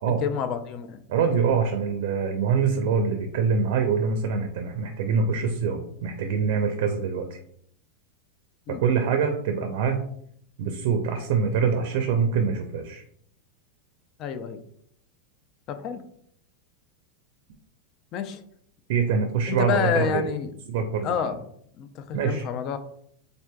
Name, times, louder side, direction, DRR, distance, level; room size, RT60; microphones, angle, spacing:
voice 1, 0.0-1.0 8.7-8.8 14.2-14.6 15.7-16.0 18.1-18.4 19.5-20.5 21.0-21.4 21.8-22.8, left 7 dB, 45° left, 9 dB, 0.4 m, -28 dB
voice 2, 1.1-7.4 8.7-10.0 10.6-13.0 18.9-20.3 20.7-21.1 22.1-22.4, right 6 dB, 65° right, 5 dB, 0.5 m, -24 dB
4.3 x 2.6 x 2.2 m, 0.66 s
hypercardioid pair, 100°, 0 cm